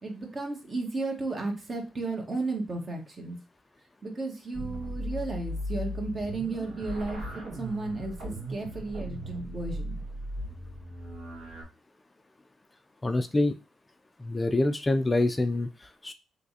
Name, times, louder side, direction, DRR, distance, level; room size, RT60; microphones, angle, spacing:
voice 1, 0.0-3.4 4.0-7.2 7.5-10.0, right 3 dB, 40° right, 2 dB, 1.3 m, -34 dB
sound 1, 4.5-11.6, equal, 65° right, 1.9 m, -37 dB
voice 2, 13.0-13.5 14.2-16.1, left 2 dB, 25° left, 9 dB, 0.4 m, -26 dB
3.2 x 3.2 x 2.7 m, 0.31 s
supercardioid pair, 55°, 0 cm